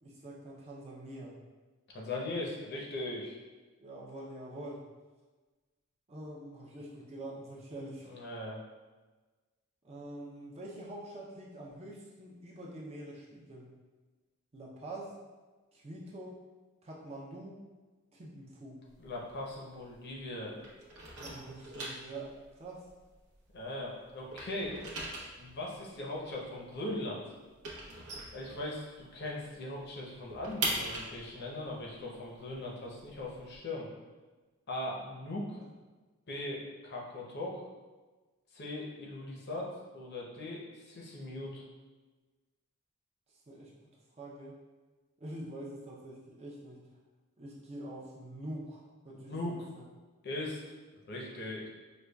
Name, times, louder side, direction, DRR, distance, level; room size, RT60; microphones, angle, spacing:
voice 1, 0.0-1.3 3.8-4.8 6.1-8.1 9.8-13.7 14.5-15.1 15.7-16.4 16.8-17.6 18.1-18.8 21.2-22.8 35.6-35.7 43.5-43.7 44.2-44.6 45.2-46.8 47.4-49.8, right 1 dB, 30° right, -4 dB, 0.5 m, -45 dB
voice 2, 1.9-3.4 8.1-8.6 19.0-20.6 23.5-24.8 25.4-27.2 28.3-33.9 34.7-35.6 36.3-37.6 38.5-39.7 39.9-41.6 49.1-49.6 50.2-50.6 51.1-51.7, left 1 dB, 50° left, -3 dB, 0.7 m, -39 dB
sound 1, 18.9-20.3 20.6-23.8 24.1-29.1 29.4-29.5 29.8-33.6, right 2 dB, 85° right, 0.8 m, -41 dB
5.0 x 2.3 x 2.2 m, 1.3 s
head